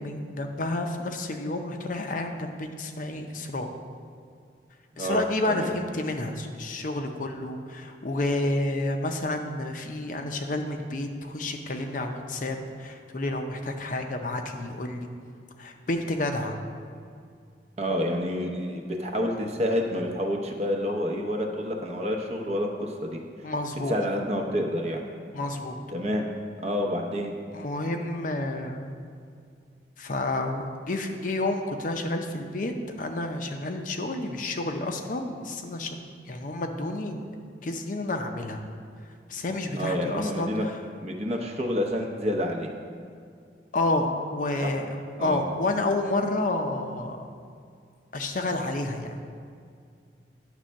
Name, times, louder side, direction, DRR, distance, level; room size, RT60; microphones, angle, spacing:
voice 1, 0.0-3.7 5.0-15.1 15.6-16.6 23.4-23.9 25.3-25.8 27.5-28.9 30.0-37.3 37.6-38.6 39.3-40.7 43.7-47.3 48.1-49.2, left 2 dB, 45° left, 5 dB, 0.5 m, -30 dB
voice 2, 5.0-5.7 17.8-23.2 23.9-25.0 25.9-26.3 26.6-27.3 39.8-40.6 41.0-42.7 44.6-44.7 45.2-45.4, equal, 35° right, 2 dB, 0.7 m, -28 dB
9.8 x 3.3 x 6.3 m, 2.2 s
head